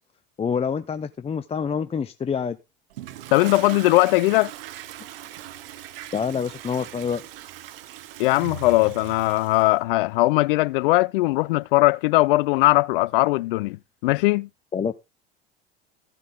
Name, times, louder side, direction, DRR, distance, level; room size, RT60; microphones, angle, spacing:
voice 1, 0.4-2.6 6.1-7.2 14.7-14.9, left 6 dB, 20° left, 0.7 m, -26 dB
Toilet flush, 2.9-9.7, right 13 dB, 70° right, 1.1 m, -40 dB
voice 2, 3.3-4.5 8.2-13.8 14.0-14.5, left 20 dB, 65° left, 0.5 m, -19 dB
14.5 x 8.2 x 3.6 m
hypercardioid pair, 75°, 30 cm